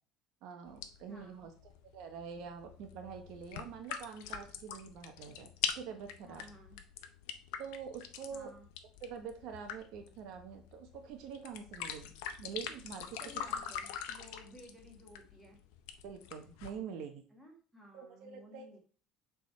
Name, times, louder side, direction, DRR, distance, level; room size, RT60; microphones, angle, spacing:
voice 1, 0.4-1.5 1.9-5.5 5.7-6.4 7.6-8.5 9.0-12.1 12.4-13.2 16.0-17.2 17.9-18.8, right 7 dB, 55° right, 5 dB, 0.9 m, -45 dB
sound 1, 0.7-16.7, left 8 dB, 85° left, 0.7 m, -44 dB
voice 2, 1.1-1.5 6.2-6.8 8.3-8.7 13.2-15.6 17.3-18.8, equal, ahead, -1 dB, 1.5 m, -56 dB
6.7 x 3.6 x 4.3 m, 0.40 s
cardioid pair, 170°, 0 cm